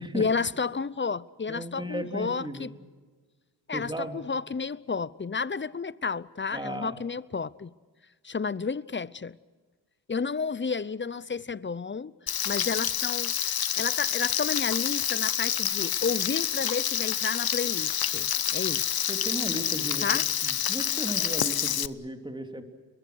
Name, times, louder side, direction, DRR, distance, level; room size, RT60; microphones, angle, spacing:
voice 1, 0.1-2.7 3.7-7.7 8.2-9.4 10.1-12.1 12.4-13.3 13.8-19.1 20.0-20.2, left 5 dB, 25° left, 0.7 m, -31 dB
voice 2, 1.5-2.7 3.7-4.2 6.5-7.0 19.1-20.1 20.4-22.6, right 1 dB, 10° right, 3.1 m, -35 dB
Frying (food), 12.3-21.9, left 10 dB, 50° left, 0.8 m, -28 dB
29.5 x 22.0 x 6.4 m
cardioid pair, 55°, 46 cm